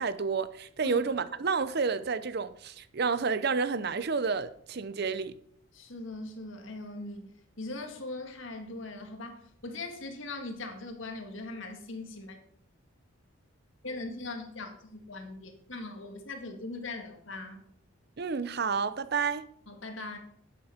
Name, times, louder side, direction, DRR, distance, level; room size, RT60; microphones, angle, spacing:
voice 1, 0.0-5.3 18.2-19.5, right 5 dB, 50° right, 0.6 m, -30 dB
voice 2, 5.7-12.4 13.8-17.6 19.7-20.2, left 2 dB, 65° left, 1.9 m, -40 dB
10.0 x 8.0 x 5.8 m
head